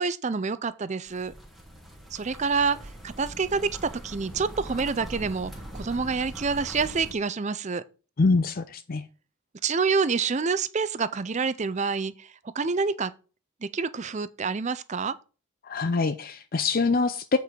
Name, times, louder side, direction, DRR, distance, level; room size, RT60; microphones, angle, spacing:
voice 1, 0.0-1.3 2.1-2.8 3.0-7.8 9.6-12.3 12.6-13.1 13.6-15.1, right 5 dB, 30° right, 0.5 m, -27 dB
sound 1, 1.1-7.1, equal, ahead, 1.5 m, -42 dB
voice 2, 8.2-9.0 15.6-17.4, left 4 dB, 40° left, 0.5 m, -24 dB
8.2 x 4.6 x 5.0 m
head